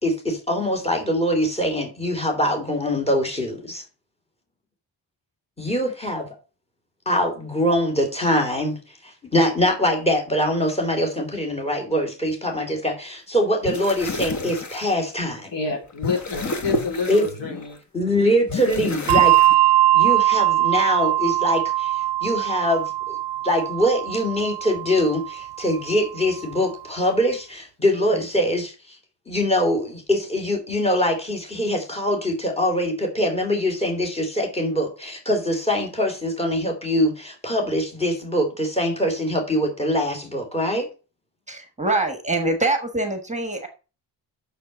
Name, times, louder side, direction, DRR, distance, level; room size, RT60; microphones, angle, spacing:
voice 1, 0.0-3.8 5.6-6.3 7.1-8.8 9.0-15.5 17.1-17.2 17.9-19.3 19.9-23.2 23.4-29.0 29.3-40.9, equal, 15° left, 2 dB, 2.7 m, -23 dB
sound 1, 13.5-14.8 15.7-17.8 18.5-19.5, left 2 dB, 40° left, 1.4 m, -30 dB
voice 2, 15.5-17.8, left 4 dB, 75° left, -1 dB, 4.3 m, -28 dB
Bell, 19.1-26.0, right 14 dB, 65° right, 0.5 m, -21 dB
voice 3, 41.5-43.7, right 2 dB, 15° right, 5 dB, 1.4 m, -24 dB
6.7 x 6.6 x 6.6 m, 0.33 s
wide cardioid pair, 145°, 44 cm